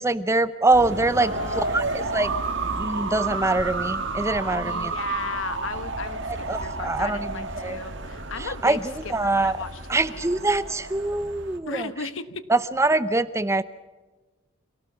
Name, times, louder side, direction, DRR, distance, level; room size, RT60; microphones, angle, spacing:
voice 1, 0.0-2.3 2.8-4.9 6.5-7.8 8.4-9.5 9.9-11.9 12.5-13.6, right 2 dB, 15° right, 14 dB, 0.6 m, -24 dB
sound 1, 0.7-11.6, right 3 dB, 60° right, 2.0 m, -31 dB
voice 2, 1.2-1.8 4.5-8.8 9.2-9.8 10.1-10.4 11.7-12.4, left 4 dB, 70° left, 12 dB, 1.3 m, -35 dB
26.5 x 18.0 x 5.7 m, 1.2 s
head